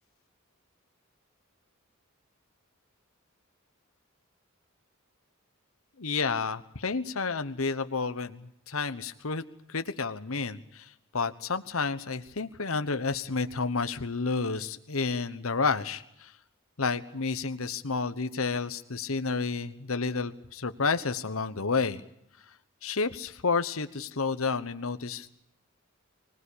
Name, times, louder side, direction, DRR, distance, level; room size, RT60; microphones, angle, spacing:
voice 1, 6.0-9.4 9.7-16.3 16.8-22.0 22.8-25.3, left 4 dB, 80° left, 10 dB, 1.1 m, -30 dB
24.5 x 19.0 x 8.6 m, 0.73 s
head